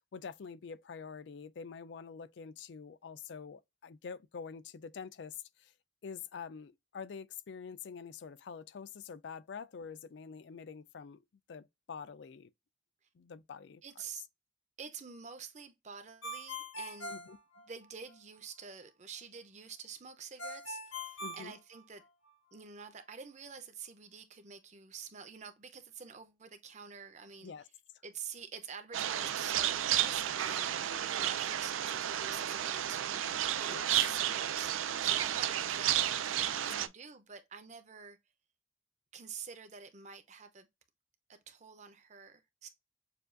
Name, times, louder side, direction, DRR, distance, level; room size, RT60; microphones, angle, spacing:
voice 1, 0.0-5.7 6.0-11.2 11.5-12.5 13.1-13.8 17.1-17.4 21.2-21.5 27.4-27.7 33.7-33.9, left 6 dB, 60° left, 0.4 m, -46 dB
voice 2, 13.8-14.3 14.8-17.1 17.6-22.0 22.5-27.5 28.0-38.2 39.1-40.7 41.3-42.7, right 6 dB, 35° right, 0.6 m, -48 dB
Ringtone, 16.2-18.1 20.4-22.3, left 1 dB, 90° left, 1.1 m, -42 dB
sound 1, 28.9-36.9, right 11 dB, 85° right, 0.4 m, -32 dB
6.8 x 2.3 x 2.5 m
head